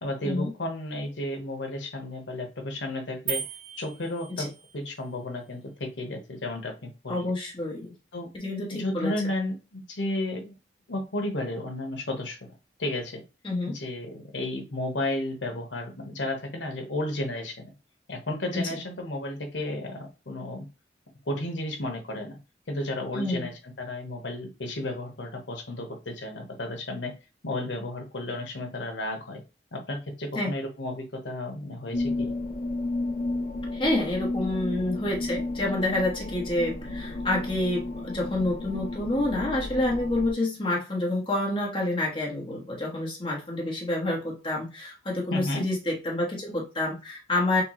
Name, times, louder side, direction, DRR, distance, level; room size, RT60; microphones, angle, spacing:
voice 1, 0.0-3.4 3.8-4.5 4.7-7.3 8.1-8.3 8.7-10.5 10.9-12.4 12.8-13.2 13.7-17.7 18.1-20.6 21.3-22.4 22.7-27.1 27.4-29.4 29.7-32.3 45.3-45.6, left 1 dB, 85° left, 4 dB, 1.0 m, -33 dB
sound 1, 3.3-4.8, right 8 dB, 50° right, 0.6 m, -36 dB
voice 2, 7.1-7.9 8.3-9.1 13.4-13.7 18.5-18.8 23.1-23.5 30.3-30.5 33.7-47.6, left 2 dB, 30° left, -2 dB, 1.1 m, -28 dB
sound 2, 31.9-40.3, left 2 dB, 45° left, 0.6 m, -32 dB
6.7 x 2.3 x 3.0 m, 0.29 s
head